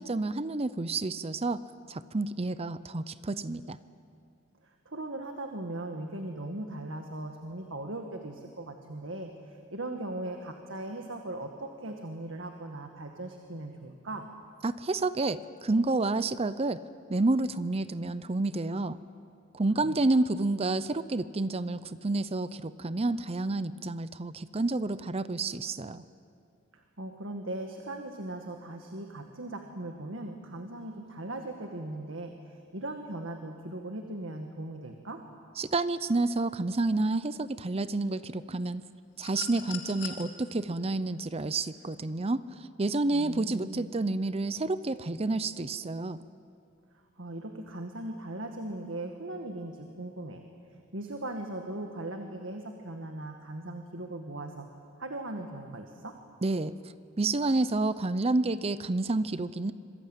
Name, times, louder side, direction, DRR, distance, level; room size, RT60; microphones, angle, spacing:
voice 1, 0.0-1.6 1.9-3.8 14.6-16.8 17.1-19.0 19.5-26.0 35.6-38.8 39.2-46.2 56.4-56.8 57.2-59.7, right 2 dB, 30° right, 14 dB, 0.6 m, -29 dB
voice 2, 4.6-14.3 19.8-20.0 26.7-35.2 43.1-43.9 46.9-50.4 50.9-54.7 55.0-56.1, right 1 dB, 65° right, 4 dB, 1.8 m, -39 dB
sound 1, 39.2-40.2 41.7-41.9, left 8 dB, 60° left, 2.6 m, -40 dB
26.5 x 22.5 x 9.1 m, 2.3 s
head